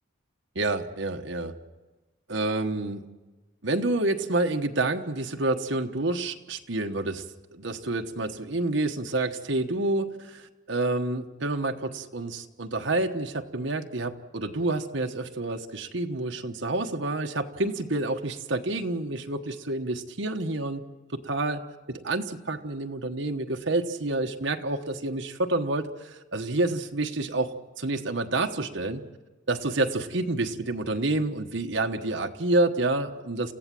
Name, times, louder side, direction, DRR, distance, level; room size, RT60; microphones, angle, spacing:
voice 1, 0.5-1.5 2.3-3.0 3.6-7.2 7.5-20.8 21.1-21.6 21.9-29.0 29.5-33.5, right 2 dB, 65° right, 4 dB, 1.2 m, -28 dB
29.5 x 16.0 x 7.6 m, 1.2 s
head